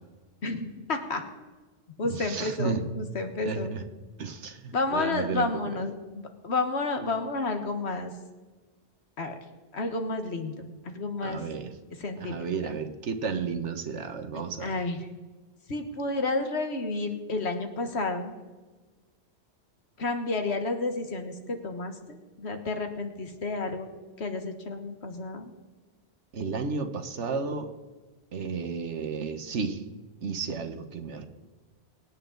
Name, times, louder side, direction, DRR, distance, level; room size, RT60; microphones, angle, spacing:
voice 1, 0.4-1.2 2.0-3.8 4.7-8.1 9.2-9.4 9.7-11.4 11.9-12.7 14.3-15.1 15.7-18.4 20.0-23.9 24.2-25.5, left 3 dB, 65° left, 6 dB, 1.7 m, -31 dB
voice 2, 2.1-2.8 3.4-3.8 4.2-5.5 11.2-11.7 12.2-14.7 26.3-27.7 28.3-29.8 30.2-31.3, right 5 dB, 75° right, 8 dB, 1.4 m, -32 dB
24.0 x 9.0 x 3.9 m, 1.3 s
omnidirectional pair, 1.2 m